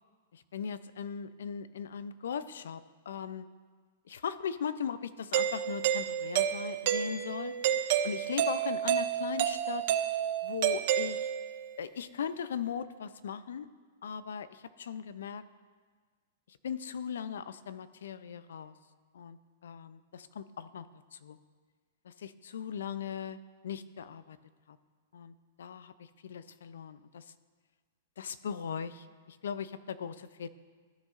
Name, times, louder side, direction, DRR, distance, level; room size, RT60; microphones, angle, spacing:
voice 1, 0.3-3.5 4.1-7.5 8.0-9.8 10.4-11.3 11.8-13.7 14.0-15.4 16.5-18.7 19.1-20.9 21.1-21.4 22.0-24.4 24.7-24.8 25.1-27.2 28.2-30.5, left 7 dB, 85° left, 14 dB, 0.4 m, -39 dB
Doorbell, 5.3-11.7, right 10 dB, 40° right, 0.4 m, -30 dB
14.5 x 6.5 x 2.5 m, 1.5 s
supercardioid pair, 175°, 0 cm